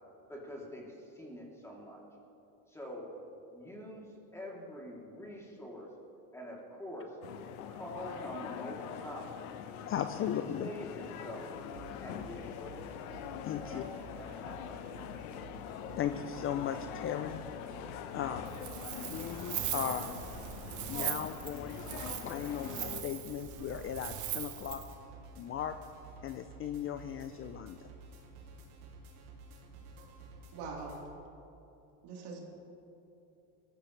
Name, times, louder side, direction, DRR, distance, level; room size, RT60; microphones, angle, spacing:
voice 1, 0.3-2.0 2.7-3.1 3.5-5.9 6.3-7.2 7.7-9.4 10.6-11.5 12.0-12.8 13.6-14.8, equal, 5° left, -3 dB, 3.0 m, -45 dB
sound 1, 7.2-23.0, left 9 dB, 80° left, 1.1 m, -43 dB
voice 2, 9.9-10.7 13.4-13.8 15.6-15.7 16.0-17.4 18.1-18.5 18.9-20.3 20.9-24.8 25.4-25.7 26.2-27.8, left 9 dB, 30° left, 9 dB, 0.5 m, -37 dB
sound 2, 11.6-31.0, right 3 dB, 85° right, 2.9 m, -52 dB
Wind, 18.4-24.9, right 11 dB, 45° right, 1.1 m, -40 dB
voice 3, 30.5-31.0 32.0-32.5, right 4 dB, 65° right, -2 dB, 3.8 m, -42 dB
22.0 x 14.5 x 3.3 m, 2.9 s
supercardioid pair, 120°, 43 cm